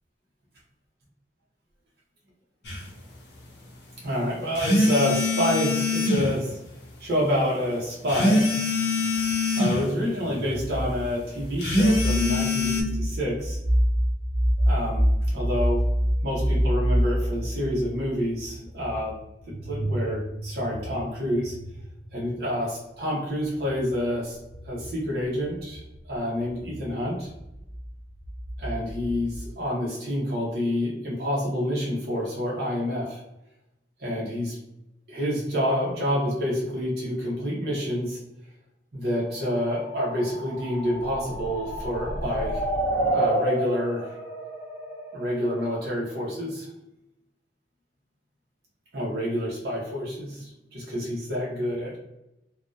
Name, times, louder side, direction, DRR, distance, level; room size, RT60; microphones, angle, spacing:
sound 1, 2.6-2.8 4.6-6.3 8.1-9.8 11.6-12.8, left 2 dB, 75° left, 0.6 m, -23 dB
voice 1, 4.0-6.6 7.0-8.5 9.5-13.6 14.7-15.8 16.2-19.2 19.5-21.5 22.1-24.4 24.6-25.8 26.1-27.3 28.6-33.2 34.0-34.6 35.1-38.2 38.9-42.6 43.1-44.1 45.1-46.7 48.9-52.0, equal, 60° right, -4 dB, 0.6 m, -28 dB
sound 2, 10.2-22.5 23.4-29.5, equal, 40° left, 0.7 m, -28 dB
sound 3, 39.8-45.6, right 1 dB, 10° right, 1.1 m, -29 dB
2.6 x 2.0 x 2.3 m, 0.87 s
head